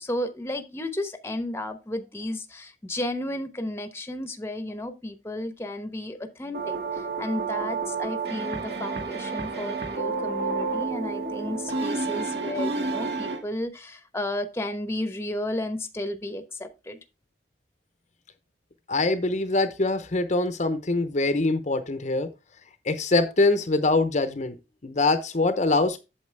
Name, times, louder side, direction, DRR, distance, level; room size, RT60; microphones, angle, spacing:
voice 1, 0.0-17.0, left 1 dB, 15° left, 9 dB, 1.0 m, -33 dB
sound 1, 6.5-13.4, right 4 dB, 65° right, 2.0 m, -30 dB
voice 2, 18.9-22.3 22.9-24.5 24.8-26.0, left 2 dB, 45° left, 10 dB, 0.8 m, -23 dB
8.6 x 7.2 x 3.3 m, 0.27 s
head